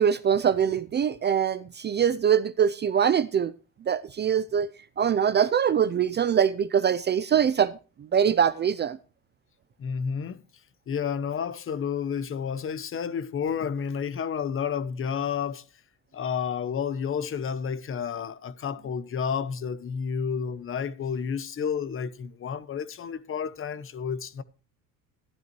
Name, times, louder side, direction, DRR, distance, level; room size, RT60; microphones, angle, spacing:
voice 1, 0.0-3.5 3.9-4.7 5.0-7.7 8.1-9.0, right 8 dB, 30° right, 0.5 m, -23 dB
voice 2, 9.8-10.4 10.9-15.6 16.1-24.4, left 7 dB, 35° left, 0.9 m, -30 dB
12.0 x 12.0 x 3.0 m
cardioid pair, 125°, 36 cm